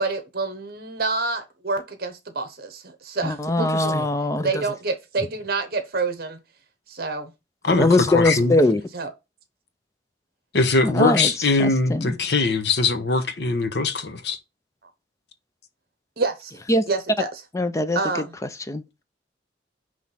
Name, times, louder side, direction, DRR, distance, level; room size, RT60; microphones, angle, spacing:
voice 1, 0.0-3.9 4.4-6.4 6.9-7.3 8.9-9.1 16.2-16.5 16.9-17.3 17.9-18.3, right 3 dB, 55° right, 0.9 m, -27 dB
voice 2, 3.2-4.6 7.8-8.8 10.8-11.3 11.6-12.2 16.7-16.9 17.5-18.0 18.7-18.8, left 2 dB, 15° left, 0.4 m, -21 dB
voice 3, 8.1-8.5 10.5-14.4, left 3 dB, 60° left, 0.9 m, -21 dB
6.0 x 3.1 x 5.5 m
head